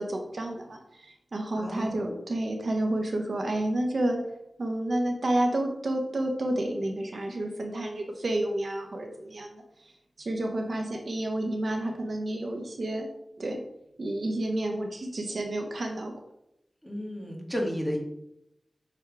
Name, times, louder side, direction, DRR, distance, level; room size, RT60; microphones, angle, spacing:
voice 1, 0.0-4.2 4.6-9.9 10.2-13.1 13.4-13.6 14.0-16.1, right 1 dB, 65° right, 3 dB, 0.8 m, -30 dB
voice 2, 1.6-2.1 16.8-18.0, equal, 5° left, -1 dB, 1.8 m, -32 dB
5.8 x 3.5 x 4.7 m, 0.81 s
cardioid pair, 50°, 0 cm